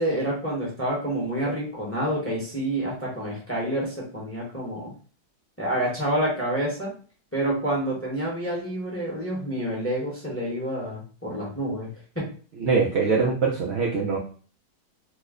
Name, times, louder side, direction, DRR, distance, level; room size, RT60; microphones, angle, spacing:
voice 1, 0.0-4.9 5.6-6.9 7.3-12.3, right 1 dB, 15° left, -5 dB, 0.6 m, -28 dB
voice 2, 12.6-14.2, right 4 dB, 90° right, -2 dB, 0.6 m, -23 dB
3.0 x 2.1 x 3.5 m, 0.41 s
omnidirectional pair, 1.8 m